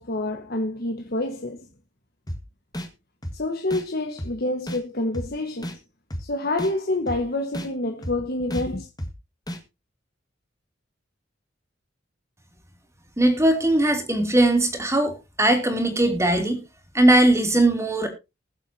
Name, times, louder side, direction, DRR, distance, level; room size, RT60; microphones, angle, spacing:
voice 1, 0.0-1.7 3.3-5.8 6.2-8.9, left 2 dB, 55° left, 1.5 m, -27 dB
sound 1, 2.3-2.4 2.7-2.9 3.2-3.4 3.7-3.8 4.2-4.3 4.7-4.8 5.1-5.3 5.6-5.8 6.1-6.2 6.6-6.7 7.1-7.2 7.5-7.7 8.0-8.2 8.5-8.6 9.0-9.1 9.5-9.6, equal, 20° left, 1.7 m, -32 dB
voice 2, 13.2-16.6 16.9-18.1, right 1 dB, 15° right, 2.8 m, -19 dB
21.0 x 7.5 x 2.8 m
head